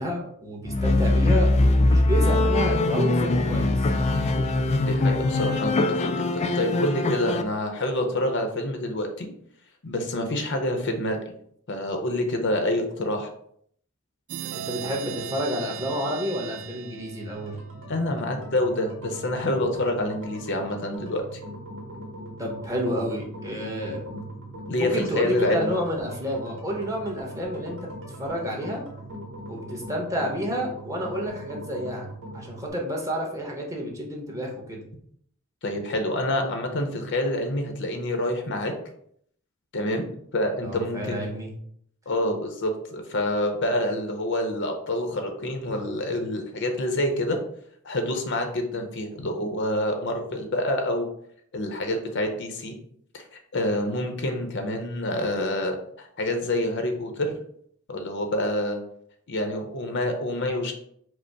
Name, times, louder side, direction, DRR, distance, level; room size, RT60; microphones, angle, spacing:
voice 1, 0.0-3.9 14.5-17.6 22.4-24.2 24.8-28.8 29.5-32.1 32.3-34.8 40.6-41.5, equal, 15° right, -1 dB, 0.9 m, -30 dB
sound 1, 0.6-7.4, left 2 dB, 30° left, 0.3 m, -22 dB
voice 2, 4.7-9.3 9.8-11.2 11.7-13.3 17.9-21.4 24.7-25.7 35.6-38.7 39.7-40.1 40.3-41.3 42.1-47.4 47.8-51.1 51.5-52.8 53.1-57.4 57.9-58.8 59.3-60.7, left 1 dB, 60° left, 4 dB, 0.7 m, -27 dB
sound 2, 14.3-17.9, right 9 dB, 75° right, 0.3 m, -37 dB
sound 3, 17.3-32.7, right 1 dB, 60° right, 1.6 m, -40 dB
5.0 x 2.0 x 4.5 m, 0.66 s
head